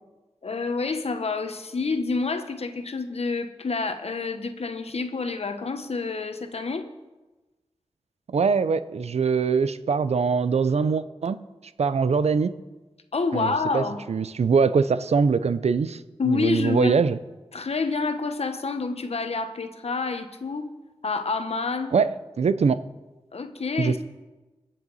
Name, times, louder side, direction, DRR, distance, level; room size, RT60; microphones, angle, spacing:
voice 1, 0.4-6.9 13.1-14.0 16.2-17.0 17.5-20.7 21.0-21.9 23.3-24.0, left 4 dB, 70° left, 8 dB, 1.2 m, -28 dB
voice 2, 8.3-11.4 11.8-12.5 13.3-17.2 21.9-22.1 22.4-22.8 23.8-24.0, right 5 dB, 80° right, 14 dB, 0.6 m, -22 dB
22.0 x 7.6 x 4.1 m, 1.2 s
cardioid pair, 40°, 11 cm